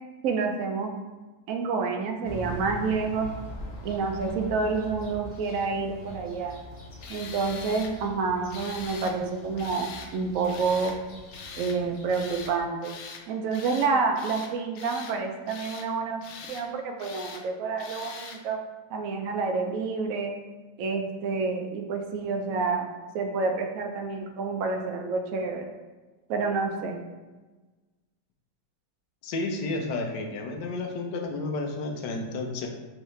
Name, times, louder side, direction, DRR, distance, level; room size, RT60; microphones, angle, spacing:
voice 1, 0.2-0.9 1.5-3.3 3.8-6.6 7.1-11.0 11.6-12.9 13.3-16.2 16.5-18.6 18.9-20.3 20.8-25.7 26.3-27.0, right 4 dB, 75° right, 3 dB, 0.7 m, -28 dB
sound 1, 2.2-12.6, equal, 45° left, 0.9 m, -42 dB
Tools, 7.0-7.9 8.5-9.2 9.6-10.1 10.5-11.0 11.3-11.8 12.1-12.5 12.8-13.2 13.5-13.9 14.2-15.2 15.5-15.9 16.2-16.7 17.0-17.4 17.8-18.4, left 6 dB, 90° left, 1.3 m, -42 dB
voice 2, 29.2-32.7, left 2 dB, 70° left, 2 dB, 1.1 m, -31 dB
4.8 x 3.2 x 3.1 m, 1.3 s
omnidirectional pair, 2.0 m